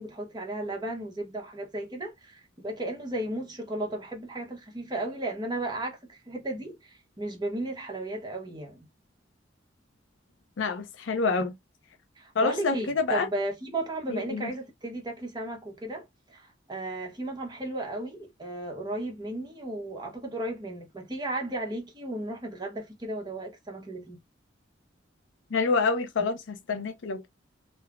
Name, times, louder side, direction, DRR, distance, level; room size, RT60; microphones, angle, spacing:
voice 1, 0.0-8.9 12.2-24.2, right 1 dB, 25° right, 0.8 m, -35 dB
voice 2, 10.6-11.5 12.4-13.3 14.1-14.5 25.5-27.3, left 4 dB, 80° left, 0.5 m, -27 dB
3.2 x 2.0 x 2.3 m
head